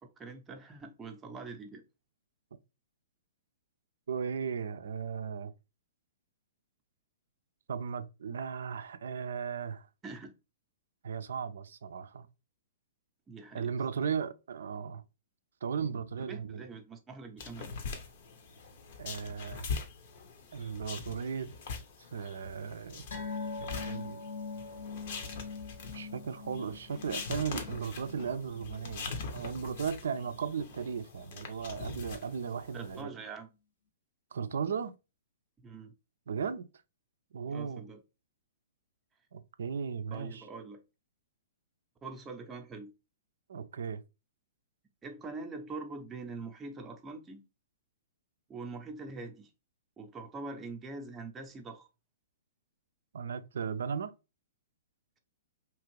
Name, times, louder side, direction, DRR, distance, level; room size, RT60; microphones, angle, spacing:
voice 1, 0.0-1.8 10.0-10.3 13.3-14.1 16.2-17.7 32.7-33.5 35.6-35.9 37.5-38.0 40.1-40.8 42.0-42.9 45.0-47.4 48.5-49.5 50.0-51.9, right 3 dB, 15° right, 0.5 m, -44 dB
voice 2, 4.1-5.5 7.7-9.9 11.0-12.3 13.5-15.0 15.6-16.6 19.0-19.7 20.5-21.5 22.1-23.1 23.6-24.3 25.9-33.1 34.3-34.9 36.3-36.7 37.3-37.8 39.3-40.4 43.5-44.0 53.1-54.1, right 6 dB, 70° right, 0.4 m, -36 dB
sound 1, 17.4-33.0, left 5 dB, 55° left, 0.7 m, -43 dB
sound 2, 23.1-29.9 30.2-30.4 30.8-30.9, left 4 dB, 80° left, 1.1 m, -43 dB
2.9 x 2.5 x 3.0 m
hypercardioid pair, 120°, 0 cm